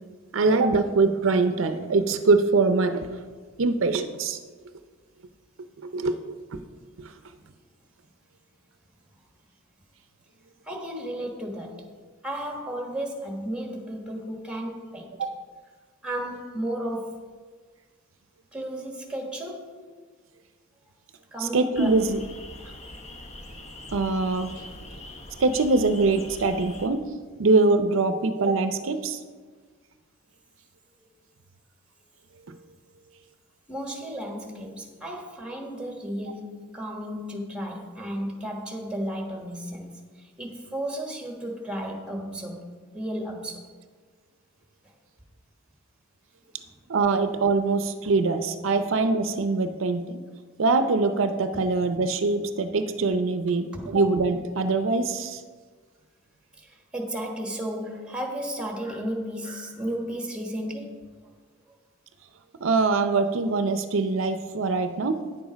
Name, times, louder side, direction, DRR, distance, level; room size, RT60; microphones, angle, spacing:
voice 1, 0.3-3.1 3.6-4.4 5.8-6.6 7.0-7.1 15.2-15.3 21.4-22.2 23.9-24.5 25.4-27.1 27.4-29.2 32.5-32.6 46.9-50.2 50.6-55.4 62.6-65.2, right 3 dB, 70° right, 0.6 m, -23 dB
voice 2, 10.6-11.9 12.2-15.1 16.0-17.2 18.5-19.9 21.3-22.0 22.6-22.7 33.7-43.7 48.0-48.1 53.7-54.0 56.6-61.1, right 1 dB, 5° right, 1.3 m, -34 dB
sound 1, 21.7-26.9, left 2 dB, 35° left, 0.8 m, -42 dB
9.8 x 7.2 x 5.1 m
head